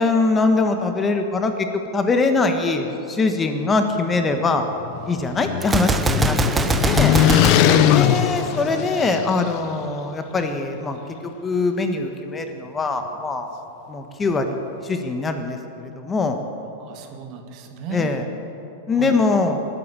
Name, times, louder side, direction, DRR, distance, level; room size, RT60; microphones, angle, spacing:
voice 1, 0.0-4.7 5.0-7.2 7.9-11.0 11.4-13.5 13.9-16.4 17.9-18.2 18.9-19.6, left 3 dB, 20° left, 6 dB, 1.4 m, -22 dB
sound 1, 4.7-9.5, left 11 dB, 50° left, 0.8 m, -20 dB
Gunshot gunfire, 5.6-8.7, right 4 dB, 15° right, 0.8 m, -23 dB
voice 2, 7.6-8.3 16.8-18.1 19.0-19.2, right 5 dB, 45° right, 5 dB, 2.0 m, -32 dB
19.0 x 8.8 x 8.5 m, 2.9 s
hypercardioid pair, 100°, 0 cm